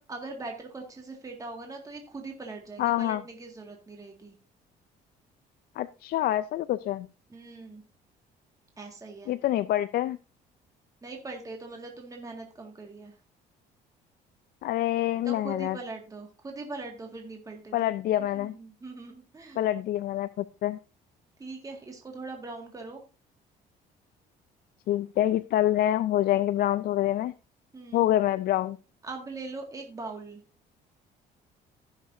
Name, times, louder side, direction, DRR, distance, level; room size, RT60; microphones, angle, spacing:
voice 1, 0.0-4.4 7.3-7.8 8.8-9.3 11.0-13.2 15.2-17.9 18.3-19.6 21.4-23.0 27.7-28.1 29.0-30.4, right 3 dB, 20° right, 1 dB, 1.9 m, -41 dB
voice 2, 2.8-3.2 5.8-7.1 9.3-10.2 14.6-15.8 17.7-18.5 19.6-20.8 24.9-27.3 27.9-28.8, left 13 dB, 65° left, 13 dB, 0.4 m, -26 dB
15.5 x 6.5 x 2.7 m, 0.32 s
cardioid pair, 110°, 17 cm